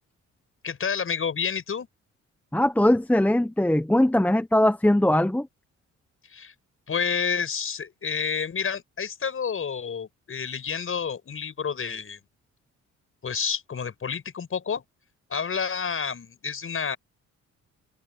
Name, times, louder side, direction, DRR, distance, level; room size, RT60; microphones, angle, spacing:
voice 1, 0.6-1.9 6.3-6.5 6.9-12.2 13.2-14.8 15.3-17.0, left 6 dB, 45° left, 6.7 m, -29 dB
voice 2, 2.5-5.5, left 1 dB, 5° left, 1.1 m, -21 dB
cardioid pair, 90°, 30 cm